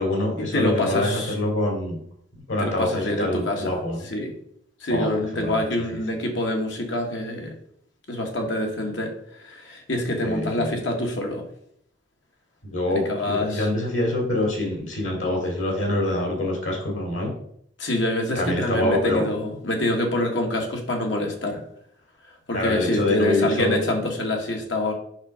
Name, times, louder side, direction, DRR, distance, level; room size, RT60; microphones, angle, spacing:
voice 1, 0.0-2.0 2.5-4.1 4.9-6.0 10.2-10.8 12.6-17.3 18.3-19.3 22.5-23.8, left 1 dB, 90° left, 2 dB, 3.2 m, -25 dB
voice 2, 0.5-1.3 2.6-3.6 4.1-4.3 4.8-7.5 8.1-9.1 9.4-11.4 13.1-13.7 17.8-21.6 22.5-24.9, left 1 dB, 70° left, 2 dB, 1.6 m, -26 dB
6.5 x 6.0 x 5.0 m, 0.69 s
head